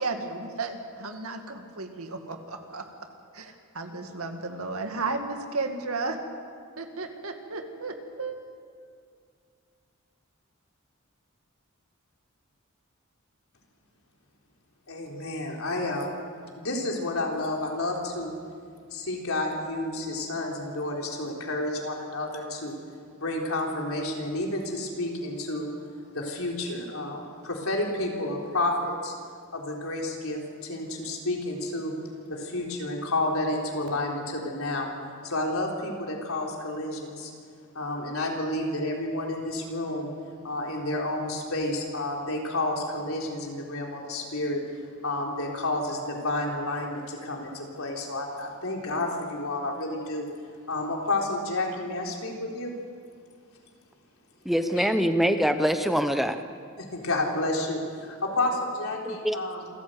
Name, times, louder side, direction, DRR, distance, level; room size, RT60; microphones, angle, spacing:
voice 1, 0.0-2.8 3.3-6.2 6.8-8.4, right 3 dB, 85° right, 5 dB, 2.3 m, -33 dB
voice 2, 14.9-16.1 16.6-18.3 18.9-22.7 23.2-25.7 26.1-29.1 29.5-31.9 32.3-34.9 35.2-37.3 37.7-40.1 40.4-44.6 45.0-50.2 50.7-52.7 54.8-54.9 56.8-59.7, left 2 dB, 75° left, 0 dB, 4.0 m, -30 dB
voice 3, 54.4-56.4 59.0-59.4, equal, ahead, 8 dB, 0.8 m, -24 dB
27.0 x 14.5 x 8.1 m, 2.2 s
head